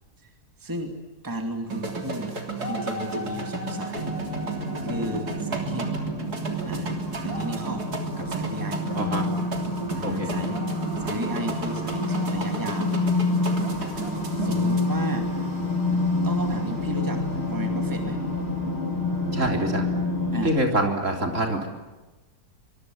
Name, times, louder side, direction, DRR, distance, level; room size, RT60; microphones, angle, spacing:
voice 1, 0.6-0.9 1.2-2.4 2.7-4.2 4.4-5.9 6.6-6.9 7.2-7.9 8.2-8.9 9.9-10.6 11.0-12.9 14.4-15.3 16.2-18.2 20.3-20.5, right 1 dB, 10° right, 4 dB, 2.6 m, -34 dB
sound 1, 1.7-14.9, right 3 dB, 65° right, 3.8 m, -33 dB
sound 2, 3.9-20.6, left 2 dB, 35° left, 4.7 m, -28 dB
voice 2, 10.0-10.3 19.3-19.8 20.4-21.7, right 1 dB, 45° right, 3 dB, 4.0 m, -25 dB
25.0 x 22.5 x 9.4 m, 1.1 s
omnidirectional pair, 1.8 m